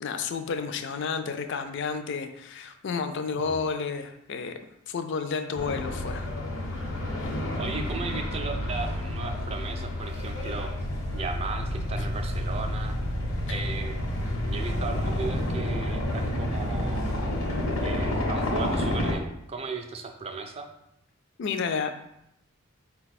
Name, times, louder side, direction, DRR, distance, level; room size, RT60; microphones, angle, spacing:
voice 1, 0.0-4.6 4.9-6.3 13.5-13.6 21.4-22.0, left 5 dB, 60° left, 8 dB, 0.4 m, -31 dB
voice 2, 3.3-3.7 7.6-10.9 11.1-13.0 13.5-14.0 14.5-17.3 17.8-20.7, right 4 dB, 30° right, 5 dB, 0.4 m, -36 dB
sound 1, 5.5-19.1, left 1 dB, 90° left, 1.0 m, -29 dB
4.6 x 2.3 x 4.1 m, 0.80 s
head